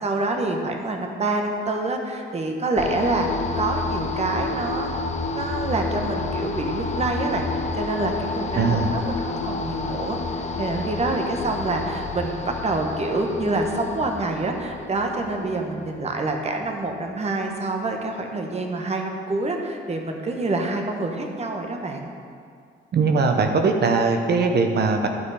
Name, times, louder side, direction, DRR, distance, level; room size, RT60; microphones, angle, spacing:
voice 1, 0.0-4.9 5.3-10.2 10.6-22.1, right 2 dB, 35° right, 2 dB, 1.2 m, -26 dB
sound 1, 2.8-16.9, left 3 dB, 35° left, 0.8 m, -30 dB
voice 2, 8.5-8.9 22.9-25.1, right 4 dB, 55° right, 4 dB, 0.9 m, -20 dB
12.5 x 5.2 x 4.9 m, 2.2 s
cardioid pair, 90°, 20 cm